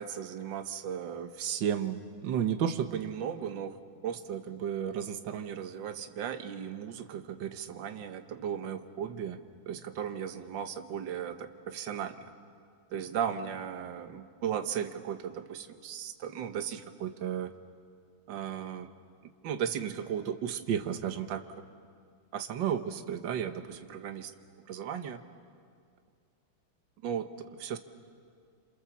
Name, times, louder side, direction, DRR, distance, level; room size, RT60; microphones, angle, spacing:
voice 1, 0.0-3.8 4.0-9.4 9.7-12.3 12.9-17.5 18.3-18.9 19.4-21.4 22.3-24.3 24.7-25.2 27.0-27.8, right 8 dB, 65° right, 8 dB, 1.7 m, -35 dB
28.0 x 27.5 x 7.2 m, 2.1 s
omnidirectional pair, 2.3 m